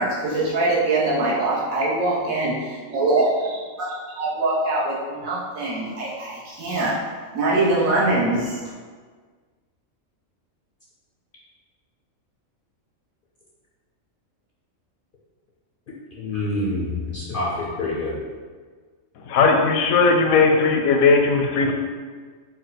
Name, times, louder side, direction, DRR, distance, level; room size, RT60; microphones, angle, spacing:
voice 1, 0.0-6.9 7.3-8.6, right 2 dB, 80° right, -6 dB, 1.4 m, -23 dB
voice 2, 16.2-18.2, left 2 dB, 65° left, -5 dB, 0.5 m, -27 dB
voice 3, 19.3-21.7, left 4 dB, 85° left, 3 dB, 1.0 m, -17 dB
4.3 x 2.2 x 3.9 m, 1.5 s
omnidirectional pair, 1.4 m